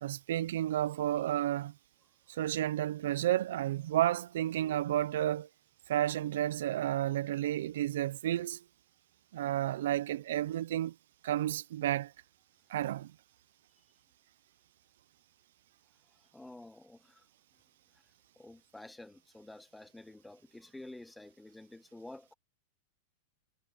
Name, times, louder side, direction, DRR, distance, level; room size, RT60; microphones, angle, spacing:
voice 1, 0.0-1.7 2.3-5.5 5.9-8.6 9.3-10.9 11.2-12.1 12.7-13.1, right 13 dB, 70° right, 0.6 m, -31 dB
voice 2, 16.1-17.3 17.9-18.0 18.4-22.3, left 2 dB, 5° left, 0.5 m, -50 dB
supercardioid pair, 165°, 0 cm